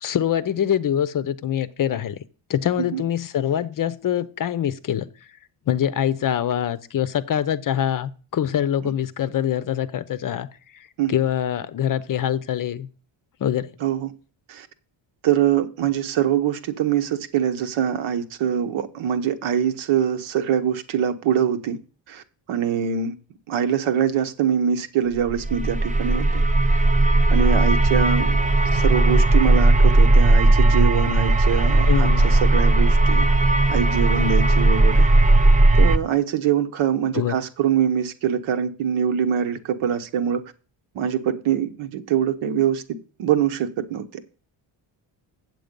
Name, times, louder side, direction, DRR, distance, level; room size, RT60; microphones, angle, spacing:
voice 1, 0.0-2.2 2.5-5.1 5.7-10.5 10.7-12.9 13.4-13.7 31.9-32.3 37.1-37.4, left 10 dB, 45° left, 0.6 m, -24 dB
voice 2, 13.8-14.1 14.5-14.7 15.2-21.8 22.1-22.2 22.5-23.1 23.5-26.4 27.3-28.4 28.7-33.3 33.7-35.1 35.8-40.4 40.9-42.8 43.2-44.2, right 9 dB, 75° right, 1.1 m, -23 dB
sound 1, 25.3-36.0, right 2 dB, 15° right, 0.5 m, -17 dB
7.8 x 7.8 x 5.2 m
cardioid pair, 135°, 48 cm